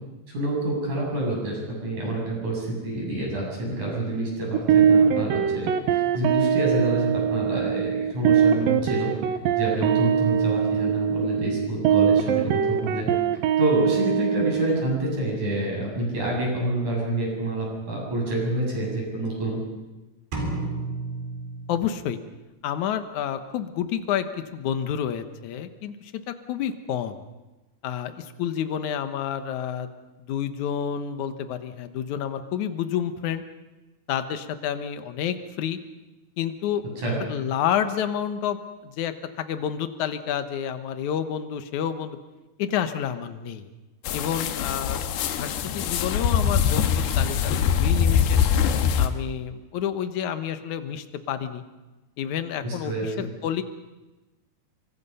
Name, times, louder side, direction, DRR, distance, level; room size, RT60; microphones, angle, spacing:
voice 1, 0.3-9.1 9.6-13.1 13.6-19.6 37.0-37.2 52.6-53.3, right 1 dB, 50° right, -2 dB, 9.2 m, -27 dB
sound 1, 4.5-14.8, right 7 dB, 70° right, 2.7 m, -22 dB
sound 2, 20.3-22.3, right 2 dB, 85° right, 6.1 m, -32 dB
voice 2, 21.7-22.2 22.6-27.2 27.8-29.9 30.2-33.4 34.1-35.8 36.4-36.8 37.2-42.2 42.6-43.7 44.1-48.4 49.0-51.6 52.2-53.6, left 9 dB, 60° left, 9 dB, 2.2 m, -29 dB
sound 3, 44.1-49.1, left 8 dB, 90° left, 3.3 m, -23 dB
27.0 x 24.0 x 5.6 m, 1.1 s
omnidirectional pair, 4.5 m